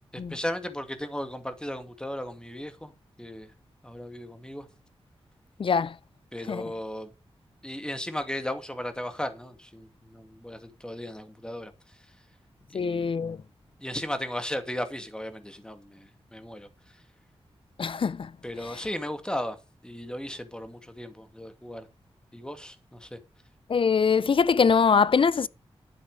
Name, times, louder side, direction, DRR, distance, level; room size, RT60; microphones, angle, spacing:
voice 1, 0.1-2.9 3.2-3.5 3.8-4.7 6.3-7.1 7.6-12.1 12.7-13.1 13.8-17.0 18.4-19.6 19.8-21.9 22.3-23.2, left 1 dB, 10° left, 2.3 m, -36 dB
voice 2, 5.6-6.0 6.5-6.7 12.7-13.4 17.8-18.3 18.7-18.8 23.7-25.5, left 5 dB, 55° left, 0.5 m, -23 dB
12.0 x 9.5 x 4.8 m
wide cardioid pair, 100°, 10 cm